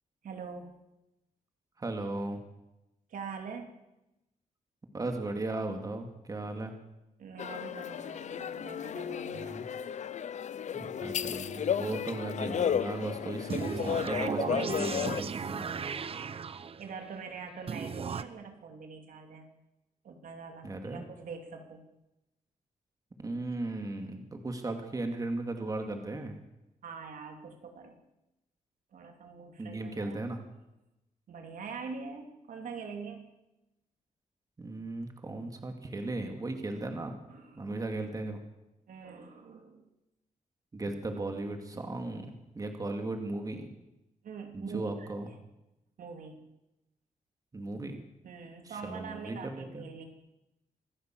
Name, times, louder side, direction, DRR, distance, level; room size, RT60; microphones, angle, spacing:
voice 1, 0.2-0.8 3.1-3.7 7.2-9.7 16.8-19.4 20.0-21.9 26.8-28.0 28.9-30.2 31.3-33.3 37.3-37.7 38.9-39.9 44.2-45.1 46.0-46.5 48.2-50.0, right 5 dB, 80° right, 4 dB, 3.2 m, -44 dB
voice 2, 1.8-2.4 4.9-6.7 9.3-9.6 10.7-15.7 20.6-21.1 23.2-26.4 29.6-30.4 34.6-37.2 37.6-38.4 40.7-43.7 44.5-45.3 47.5-48.0 48.7-49.8, right 2 dB, 25° right, 5 dB, 2.5 m, -36 dB
sound 1, 7.4-15.2, left 8 dB, 60° left, 0.7 m, -33 dB
sound 2, 13.5-17.0 17.7-18.2, right 6 dB, 45° right, 0.9 m, -36 dB
26.0 x 15.5 x 7.8 m, 0.94 s
wide cardioid pair, 150°, 14 cm